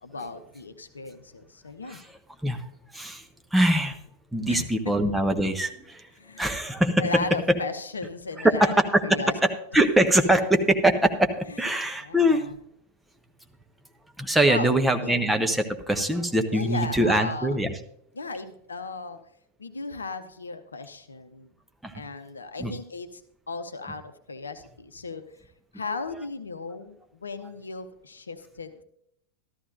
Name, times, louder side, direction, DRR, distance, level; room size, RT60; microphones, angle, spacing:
voice 1, 0.0-2.0 4.5-4.9 6.2-6.6 7.0-8.7 9.0-9.3 10.4-10.5 11.5-11.7 12.0-12.6 14.5-14.8 15.0-15.2 16.5-17.6 18.1-19.2 19.6-21.5 21.9-23.2 23.5-25.2 25.7-28.8, left 4 dB, 75° left, 10 dB, 0.7 m, -36 dB
voice 2, 2.9-3.2 3.5-4.0 4.3-6.1 6.4-7.6 8.4-12.5 14.2-17.7 21.8-21.9 22.6-22.7, right 1 dB, 5° right, 6 dB, 0.8 m, -23 dB
13.0 x 13.0 x 2.6 m, 0.71 s
figure-of-eight pair, 90°, 0 cm